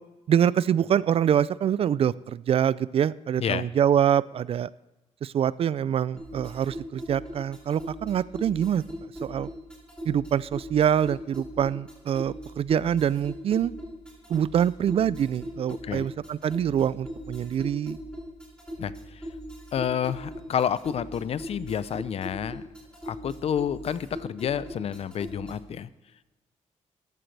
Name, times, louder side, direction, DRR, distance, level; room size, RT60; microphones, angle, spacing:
voice 1, 0.3-4.7 5.2-8.8 9.2-9.5 10.1-13.7 14.3-18.0, right 9 dB, 55° right, 19 dB, 0.4 m, -25 dB
sound 1, 6.2-25.7, equal, 10° left, 5.1 m, -40 dB
voice 2, 15.7-16.1 18.8-19.3 19.7-22.7 23.0-25.9, left 8 dB, 55° left, 16 dB, 0.6 m, -29 dB
14.0 x 12.0 x 3.3 m, 1.1 s
cardioid pair, 125°, 12 cm